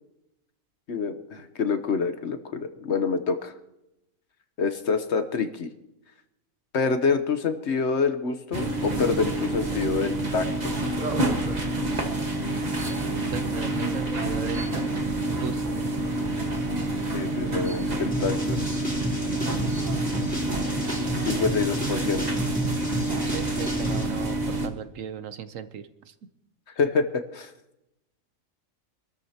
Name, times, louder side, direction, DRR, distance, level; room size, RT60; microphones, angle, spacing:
voice 1, 0.9-3.5 4.6-5.7 6.7-10.7 17.1-18.8 21.2-22.2 26.8-27.5, left 5 dB, 55° left, 9 dB, 1.2 m, -27 dB
sound 1, 8.5-24.7, right 1 dB, 30° right, 1.5 m, -28 dB
voice 2, 13.0-15.8 23.2-26.1, right 8 dB, 70° right, 11 dB, 1.2 m, -37 dB
sound 2, 18.1-24.0, equal, 5° left, 3.0 m, -32 dB
26.0 x 13.0 x 2.9 m, 0.88 s
omnidirectional pair, 1.4 m